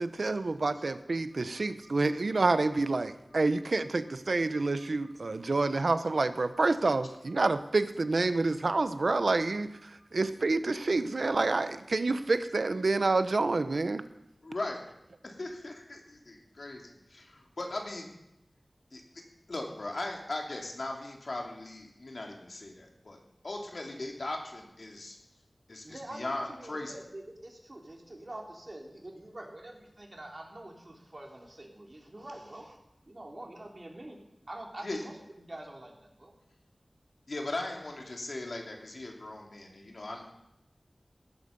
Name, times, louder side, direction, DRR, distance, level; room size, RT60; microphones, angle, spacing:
voice 1, 0.0-9.7 10.1-14.0, right 3 dB, 85° right, 11 dB, 0.9 m, -28 dB
voice 2, 14.4-14.8 15.2-18.1 18.9-19.0 19.5-23.2 23.4-25.2 25.7-27.0 34.8-35.0 37.3-40.3, left 2 dB, 75° left, 1 dB, 3.3 m, -38 dB
voice 3, 25.8-32.8 33.1-34.2 34.5-35.1 35.4-36.3, right 1 dB, 45° right, 0 dB, 3.6 m, -45 dB
17.0 x 13.5 x 5.4 m, 0.85 s
wide cardioid pair, 60°, 0 cm